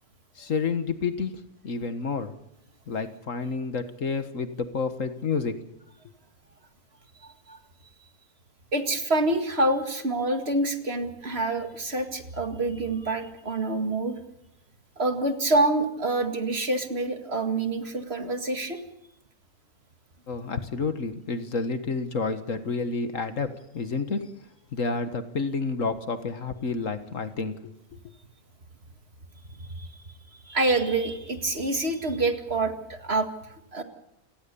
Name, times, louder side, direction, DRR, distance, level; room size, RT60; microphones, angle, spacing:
voice 1, 0.4-1.3 1.6-2.3 2.9-5.5 20.3-23.5 23.7-24.2 24.7-27.7, left 4 dB, 60° left, 10 dB, 1.8 m, -29 dB
voice 2, 8.7-14.1 15.0-18.8 29.6-29.9 30.5-33.3 33.7-33.8, right 2 dB, 45° right, 6 dB, 2.3 m, -26 dB
29.0 x 19.0 x 6.9 m, 0.84 s
omnidirectional pair, 1.6 m